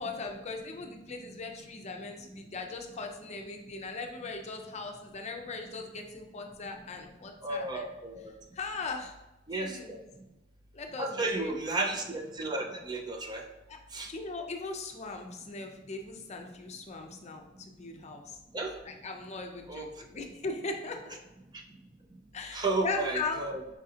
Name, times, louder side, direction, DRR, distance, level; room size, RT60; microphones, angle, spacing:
voice 1, 0.0-7.9 8.5-9.1 9.6-10.0 10.7-11.6 13.7-13.8 14.1-18.4 18.9-21.2 22.3-23.4, left 3 dB, 35° left, 3 dB, 0.5 m, -39 dB
voice 2, 7.4-8.3 9.5-10.0 11.0-13.4 13.9-14.1 18.5-18.8 19.7-19.9 22.5-23.6, right 2 dB, 20° right, 3 dB, 0.4 m, -33 dB
5.0 x 3.7 x 2.8 m, 0.99 s
head